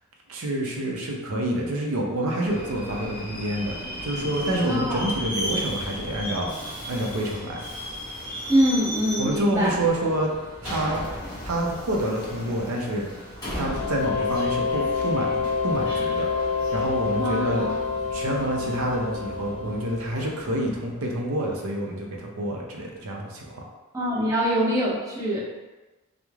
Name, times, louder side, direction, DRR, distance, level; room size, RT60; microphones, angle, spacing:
voice 1, 0.3-6.5 6.9-7.6 9.2-10.3 10.6-11.0 11.4-13.1 13.5-16.3 16.5-17.7 18.1-23.6, right 1 dB, 70° right, 0 dB, 0.5 m, -28 dB
Subway metro underground, 2.4-20.9, equal, 20° left, 1.2 m, -36 dB
voice 2, 4.6-5.0 8.5-9.7 17.2-17.7 23.9-25.4, equal, 15° right, -7 dB, 0.6 m, -24 dB
sound 1, 13.6-20.3, left 5 dB, 90° left, 0.3 m, -28 dB
3.0 x 2.0 x 2.3 m, 1.1 s
head